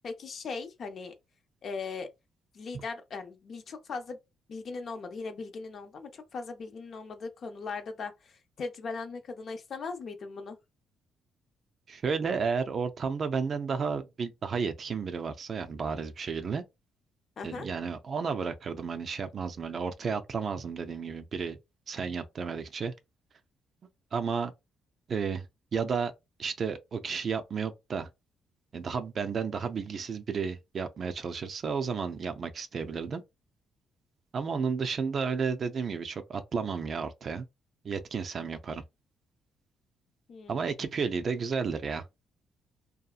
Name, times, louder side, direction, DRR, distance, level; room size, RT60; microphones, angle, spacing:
voice 1, 0.0-1.1 1.6-2.1 2.5-4.2 4.5-10.6 17.4-17.7 40.3-40.7, left 4 dB, 55° left, 0.6 m, -39 dB
voice 2, 11.9-16.6 17.4-21.6 21.9-22.9 24.1-24.5 25.1-25.5 25.7-26.1 26.4-28.1 28.7-33.2 34.3-37.5 37.8-38.8 40.5-42.1, right 5 dB, 50° right, 0.4 m, -32 dB
2.7 x 2.4 x 2.3 m
cardioid pair, 90°, 0 cm